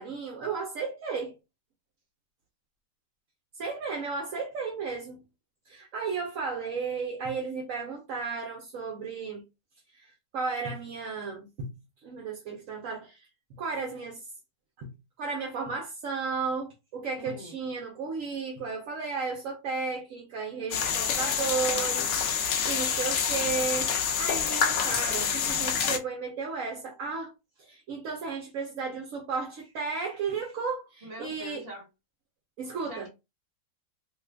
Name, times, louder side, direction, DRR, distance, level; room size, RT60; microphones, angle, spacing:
voice 1, 0.0-1.4 3.6-5.2 5.7-9.4 9.9-11.7 12.0-14.3 14.8-14.9 15.2-27.3 27.6-31.7 32.6-33.1, right 5 dB, 60° right, 0.9 m, -34 dB
voice 2, 17.2-17.6 31.0-31.9 32.8-33.1, equal, 35° right, 1.6 m, -42 dB
sound 1, 20.7-26.0, left 7 dB, 80° left, 0.6 m, -27 dB
3.0 x 2.4 x 3.3 m
omnidirectional pair, 1.9 m